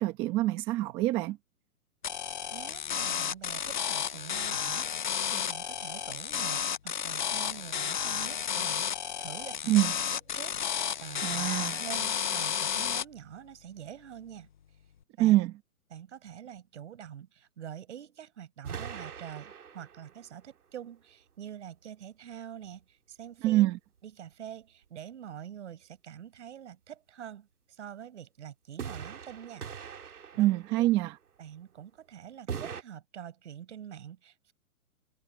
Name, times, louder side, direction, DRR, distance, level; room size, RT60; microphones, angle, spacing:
voice 1, 0.0-1.4 9.7-9.9 11.2-11.8 15.2-15.5 23.4-23.8 30.4-31.1, right 16 dB, 10° right, 1.1 m, -25 dB
sound 1, 2.0-13.0, left 8 dB, 35° left, 0.6 m, -32 dB
voice 2, 2.5-4.9 5.3-9.7 10.1-11.5 11.8-14.5 15.2-15.4 15.9-23.7 24.0-29.7 30.3-30.9 31.4-34.5, right 9 dB, 50° right, 6.3 m, -45 dB
sound 2, 18.6-20.3 28.8-31.0 32.5-32.8, right 7 dB, 85° right, 3.3 m, -41 dB
hypercardioid pair, 170°, 44 cm